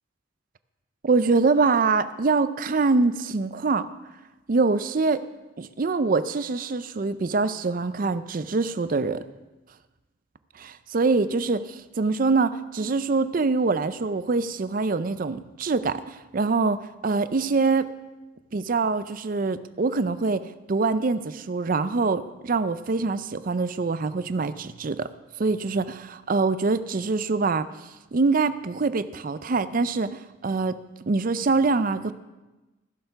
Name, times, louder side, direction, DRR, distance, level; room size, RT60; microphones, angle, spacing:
voice 1, 1.0-3.9 4.5-5.2 5.6-9.2 10.6-16.8 17.0-17.9 18.5-25.1 25.4-27.7 28.1-30.8 31.1-32.1, right 4 dB, 45° right, 13 dB, 0.5 m, -24 dB
15.0 x 6.8 x 5.7 m, 1.1 s
head